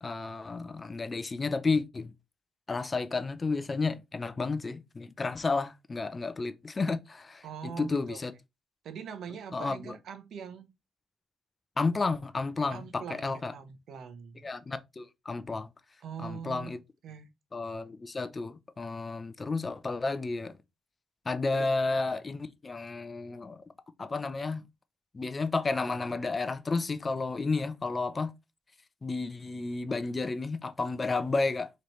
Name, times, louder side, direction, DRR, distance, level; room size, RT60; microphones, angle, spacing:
voice 1, 0.0-2.1 2.7-8.3 9.5-10.0 11.8-13.5 14.4-15.7 16.2-16.8 17.5-20.5 21.3-23.6 24.0-24.6 25.1-28.3 29.0-31.7, left 3 dB, 30° left, 0.5 m, -32 dB
voice 2, 7.4-8.2 8.8-10.7 12.7-14.4 16.0-16.8 17.0-17.3 21.5-21.7, right 7 dB, 70° right, 0.8 m, -42 dB
4.2 x 3.1 x 3.1 m
cardioid pair, 90°, 0 cm